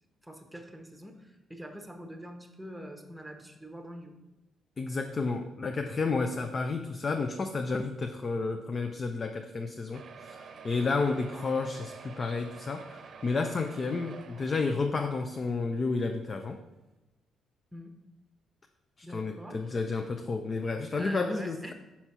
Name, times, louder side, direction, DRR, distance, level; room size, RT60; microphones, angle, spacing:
voice 1, 0.2-4.1 17.7-17.9 19.0-19.6 20.9-21.7, equal, 5° right, 5 dB, 1.0 m, -44 dB
voice 2, 4.8-16.6 19.0-21.6, left 4 dB, 40° left, 5 dB, 0.5 m, -31 dB
sound 1, 9.9-15.4 16.0-16.1 16.4-16.5 16.8-16.9, right 5 dB, 60° right, 0.7 m, -48 dB
5.7 x 4.2 x 6.0 m, 1.0 s
cardioid pair, 90°, 0 cm